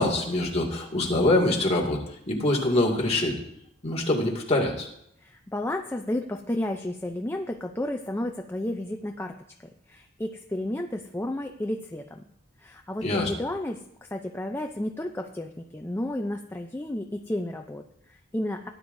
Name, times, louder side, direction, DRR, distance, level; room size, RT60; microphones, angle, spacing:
voice 1, 0.0-3.4 3.8-4.9 13.0-13.3, left 1 dB, 30° left, -3 dB, 2.1 m, -24 dB
voice 2, 5.2-9.4 9.9-12.2 12.6-18.7, left 1 dB, 10° left, 3 dB, 0.5 m, -32 dB
17.5 x 10.5 x 2.6 m, 0.76 s
head